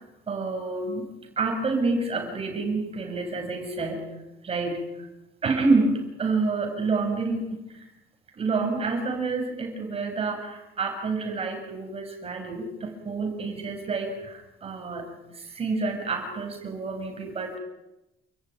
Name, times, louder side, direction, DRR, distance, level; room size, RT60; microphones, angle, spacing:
voice 1, 0.3-1.1 1.4-4.0 4.4-4.8 5.4-7.8 8.4-15.1 15.3-17.6, right 3 dB, 35° right, 3 dB, 7.3 m, -28 dB
29.5 x 14.5 x 9.7 m, 0.95 s
cardioid pair, 110°, 17 cm